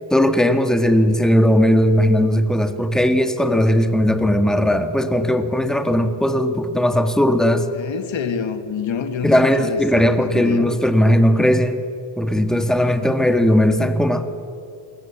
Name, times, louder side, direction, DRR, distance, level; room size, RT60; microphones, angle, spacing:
voice 1, 0.1-7.7 9.2-11.8 12.2-14.2, equal, ahead, 7 dB, 1.8 m, -17 dB
voice 2, 7.7-10.7, left 6 dB, 65° left, 8 dB, 1.9 m, -27 dB
27.5 x 21.0 x 7.3 m, 2.5 s
cardioid pair, 80°, 50 cm